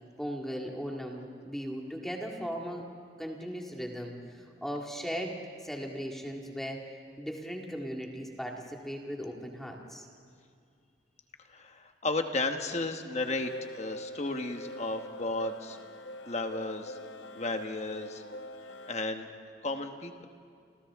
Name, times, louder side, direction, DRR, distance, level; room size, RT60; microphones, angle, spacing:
voice 1, 0.2-2.8 3.2-5.4 5.6-6.8 7.2-10.1, equal, ahead, 0 dB, 2.0 m, -37 dB
voice 2, 11.5-15.8 16.3-17.0 17.4-18.2 18.9-19.3 19.6-20.3, left 2 dB, 35° left, 6 dB, 1.3 m, -33 dB
sound 1, 13.2-19.0, left 1 dB, 85° left, 0.7 m, -44 dB
30.0 x 27.0 x 3.7 m, 2.3 s
head